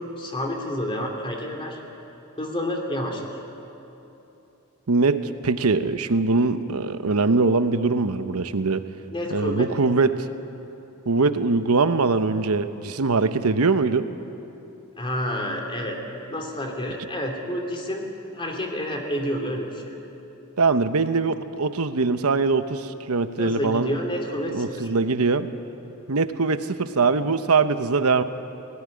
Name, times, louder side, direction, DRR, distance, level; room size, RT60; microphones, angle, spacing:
voice 1, 0.2-1.8 2.4-3.2 9.1-9.7 15.0-16.0 16.3-18.1 18.3-20.0 23.4-24.9, equal, 25° left, 2 dB, 2.9 m, -29 dB
voice 2, 4.9-8.8 9.3-10.3 11.1-14.1 20.6-23.9 24.5-25.5 26.1-28.2, right 4 dB, 85° right, 10 dB, 0.9 m, -22 dB
19.0 x 17.5 x 9.8 m, 3.0 s
head